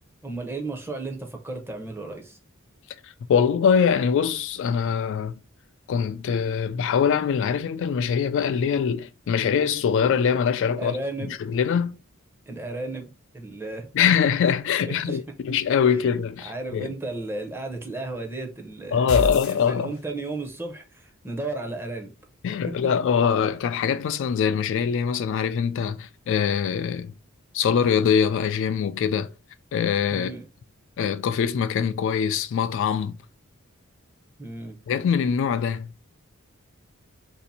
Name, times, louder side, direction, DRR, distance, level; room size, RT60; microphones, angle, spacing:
voice 1, 0.2-2.4 10.7-11.4 12.5-13.1 13.3-13.9 14.9-15.2 16.4-19.3 19.7-22.1 30.1-30.5 34.4-34.8, right 2 dB, 10° right, 0.6 m, -34 dB
voice 2, 3.3-5.4 5.9-11.0 11.5-12.0 13.9-16.9 18.9-19.9 22.4-27.1 27.5-29.3 29.7-30.3 31.0-33.2 34.9-35.9, left 7 dB, 65° left, 0.3 m, -23 dB
sound 1, 19.1-20.3, left 2 dB, 80° left, 0.8 m, -29 dB
2.7 x 2.5 x 4.0 m
head